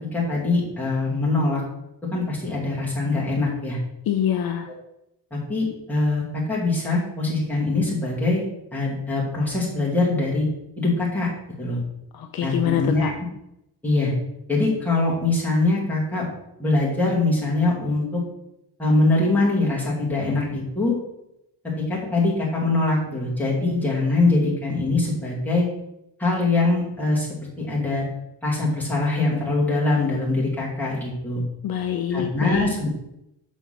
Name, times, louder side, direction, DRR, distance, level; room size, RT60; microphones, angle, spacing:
voice 1, 0.1-1.6 2.1-3.8 5.3-8.4 8.7-10.5 10.8-11.3 11.6-11.8 12.4-13.1 13.8-14.1 14.5-16.3 16.6-18.2 18.8-20.9 21.8-25.7 26.2-27.3 27.6-28.1 28.4-31.4 32.1-32.9, left 2 dB, 5° left, -6 dB, 2.2 m, -23 dB
voice 2, 4.1-4.7 12.1-13.1 31.6-32.8, left 10 dB, 50° left, 5 dB, 0.6 m, -25 dB
7.1 x 4.4 x 5.8 m, 0.85 s
cardioid pair, 170°, 46 cm